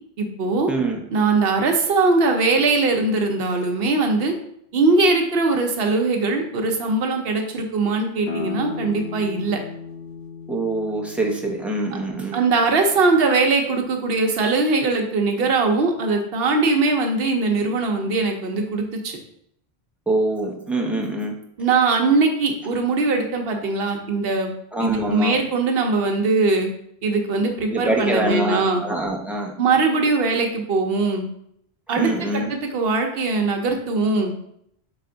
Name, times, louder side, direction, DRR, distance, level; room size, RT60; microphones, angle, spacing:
voice 1, 0.2-0.7 1.1-4.3 4.7-9.6 12.3-19.2 21.6-24.5 24.8-26.7 27.0-28.8 29.6-31.3 31.9-34.3, right 3 dB, 65° right, 3 dB, 0.9 m, -21 dB
voice 2, 0.7-1.0 10.5-12.4 20.1-21.3 24.7-25.4 27.7-29.5 31.9-32.5, right 2 dB, ahead, -1 dB, 0.5 m, -24 dB
sound 1, 8.2-13.6, left 5 dB, 80° left, 0.9 m, -36 dB
4.1 x 3.4 x 3.8 m, 0.71 s
omnidirectional pair, 1.1 m